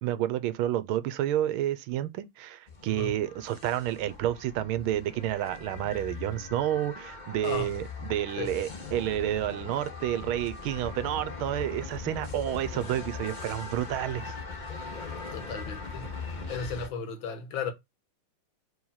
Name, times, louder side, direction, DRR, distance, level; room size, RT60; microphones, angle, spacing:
voice 1, 0.0-14.3, right 12 dB, 80° right, 1.5 m, -30 dB
sound 1, 2.7-16.9, left 4 dB, 35° left, 0.8 m, -40 dB
voice 2, 7.4-7.7 8.4-8.5 15.3-16.1 16.5-17.7, left 5 dB, 70° left, 1.7 m, -35 dB
4.8 x 3.7 x 5.5 m
omnidirectional pair, 2.3 m